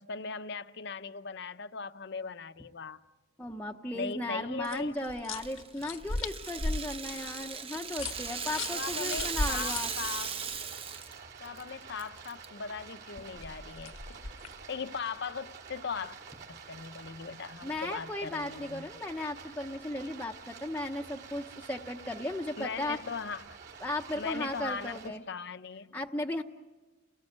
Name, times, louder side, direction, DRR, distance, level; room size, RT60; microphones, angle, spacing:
voice 1, 0.0-3.0 3.9-4.9 8.7-10.4 11.4-14.0 14.7-16.2 16.5-18.9 22.6-23.6 24.2-26.0, left 5 dB, 55° left, 0.7 m, -39 dB
voice 2, 3.4-9.9 17.6-23.0 23.8-25.2 25.9-26.4, left 1 dB, 10° left, 0.8 m, -36 dB
sound 1, 4.6-10.6 13.2-14.6, left 2 dB, 90° left, 1.3 m, -38 dB
Rattle (instrument), 5.4-11.2 11.4-11.6 12.0-12.5, right 6 dB, 30° right, 0.8 m, -37 dB
Stream, 8.0-25.1, right 5 dB, 55° right, 3.4 m, -49 dB
30.0 x 19.5 x 9.3 m
head